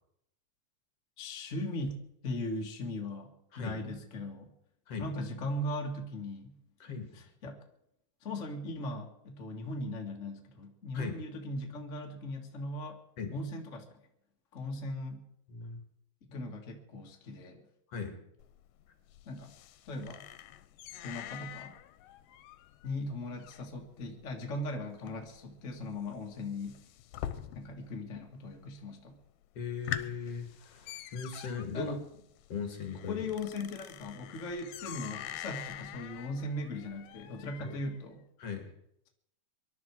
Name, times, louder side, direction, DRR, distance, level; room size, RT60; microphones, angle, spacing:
voice 1, 1.2-4.5 5.0-6.6 7.1-7.6 8.2-13.0 13.3-13.9 14.5-15.2 16.3-17.6 19.3-19.5 19.9-20.2 21.0-21.7 22.8-26.8 27.5-29.2 31.7-32.0 33.1-38.2, left 1 dB, 30° left, 1 dB, 1.8 m, -38 dB
voice 2, 6.8-7.1 10.9-11.2 13.2-13.3 15.5-15.8 17.9-18.2 29.6-31.9 32.5-33.3 37.6-37.7 38.4-38.7, left 5 dB, 50° left, 5 dB, 3.0 m, -38 dB
sound 1, 18.4-28.0 28.2-28.8 29.2-29.3 29.6-38.0, left 11 dB, 80° left, 2.4 m, -45 dB
25.0 x 11.5 x 4.7 m, 0.78 s
omnidirectional pair, 3.7 m